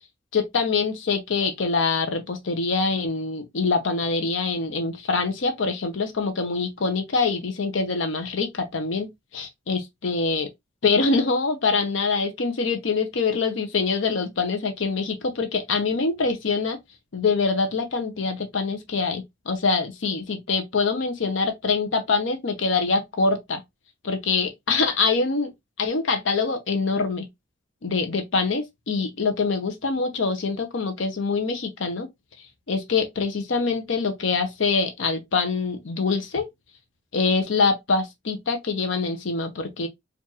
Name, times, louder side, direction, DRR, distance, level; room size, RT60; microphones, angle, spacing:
voice 1, 0.3-9.1 9.3-10.5 10.8-16.8 17.1-23.6 24.0-25.5 25.8-27.3 27.8-32.1 32.7-36.5 37.1-39.9, left 4 dB, 80° left, 0.7 m, -24 dB
4.6 x 2.5 x 2.8 m
head